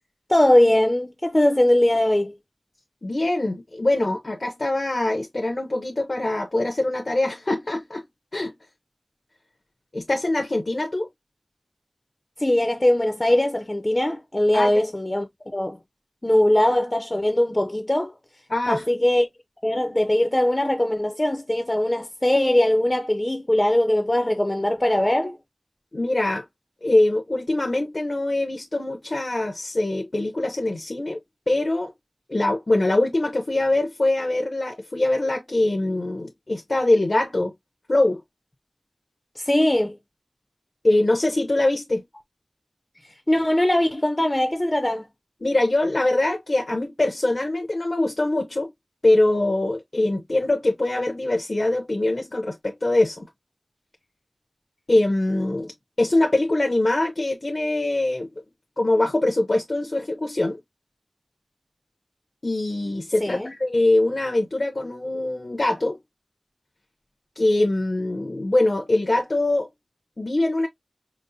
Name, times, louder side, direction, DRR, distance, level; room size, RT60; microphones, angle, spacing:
voice 1, 0.3-2.3 12.4-15.3 15.5-15.8 16.2-18.1 18.7-19.3 19.6-25.4 39.4-39.9 43.3-45.1 63.2-63.5, left 1 dB, 25° left, 0.6 m, -21 dB
voice 2, 3.0-8.0 8.3-8.5 9.9-11.1 14.5-14.8 18.5-18.9 25.9-26.4 26.8-31.2 31.5-31.9 32.3-37.5 37.9-38.2 40.8-42.0 45.4-48.7 49.0-53.3 54.9-55.7 56.0-58.3 58.8-60.6 62.4-66.0 67.4-69.7 70.2-70.7, left 2 dB, 55° left, 0.8 m, -23 dB
5.1 x 2.1 x 2.7 m
wide cardioid pair, 60°, 0 cm